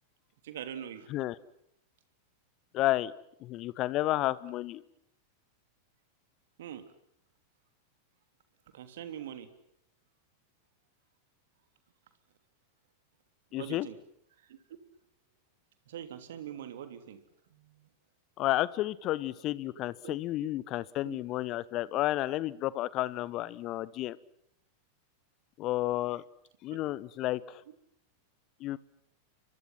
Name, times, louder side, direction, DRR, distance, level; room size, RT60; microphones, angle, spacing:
voice 1, 0.4-1.1 6.6-6.8 8.7-9.5 13.5-14.0 14.5-14.6 15.9-17.2 17.5-17.9 20.0-20.2 21.0-21.2 26.7-26.8, right 10 dB, 60° right, 10 dB, 3.1 m, -43 dB
voice 2, 2.7-3.1 3.4-4.8 13.5-13.9 18.4-24.2 25.6-26.2 26.6-27.6 28.6-28.8, left 16 dB, 35° left, 20 dB, 1.1 m, -31 dB
30.0 x 25.0 x 5.9 m, 0.73 s
figure-of-eight pair, 90°, 0 cm